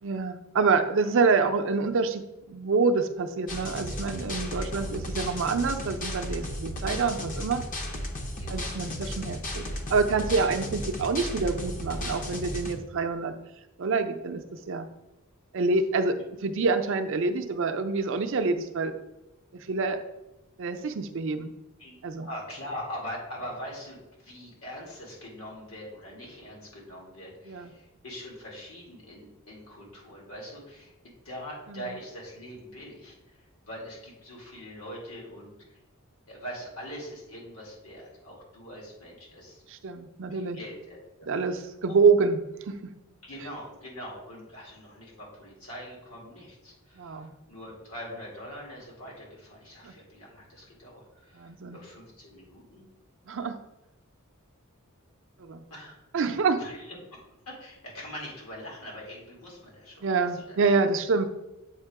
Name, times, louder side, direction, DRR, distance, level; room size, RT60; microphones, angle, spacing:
voice 1, 0.0-7.6 8.5-9.6 9.9-13.3 13.8-14.9 15.5-18.9 19.5-20.0 20.6-21.5 22.0-22.3 27.5-27.7 31.7-32.0 39.7-40.6 41.3-42.4 42.7-42.8 47.0-47.3 49.8-49.9 51.4-51.8 53.3-53.6 55.4-55.6 56.1-56.6 60.0-61.3, right 4 dB, 65° right, 8 dB, 0.5 m, -26 dB
sound 1, 3.5-12.8, left 1 dB, 40° left, 0.6 m, -35 dB
voice 2, 8.4-8.7 9.0-9.3 21.8-33.2 33.6-35.8 36.3-39.6 40.3-41.3 43.2-52.8 55.7-56.0 56.6-57.2 57.5-60.6, equal, 85° left, -3 dB, 2.1 m, -43 dB
7.4 x 2.9 x 4.7 m, 0.99 s
head